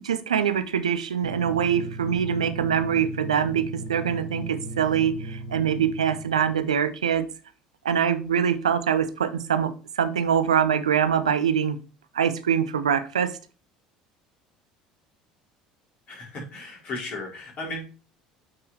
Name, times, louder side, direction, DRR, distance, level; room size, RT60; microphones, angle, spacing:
voice 1, 0.0-7.3 7.8-11.8 12.1-13.3, right 8 dB, 75° right, 11 dB, 0.6 m, -24 dB
sound 1, 1.2-6.6, right 2 dB, 80° left, 1.0 m, -37 dB
voice 2, 16.1-17.8, left 2 dB, 40° left, -2 dB, 3.8 m, -35 dB
8.5 x 4.6 x 3.2 m, 0.36 s
figure-of-eight pair, 60°, 4 cm